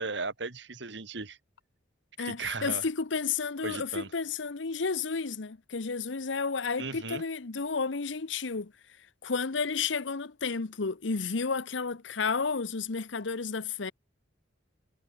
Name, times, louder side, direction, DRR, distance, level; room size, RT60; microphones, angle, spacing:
voice 1, 0.0-1.4 2.2-2.8 3.6-4.1 6.8-7.2, right 3 dB, 65° right, 2.0 m, -36 dB
voice 2, 2.2-8.7 9.2-13.9, left 5 dB, 70° left, 0.9 m, -32 dB
head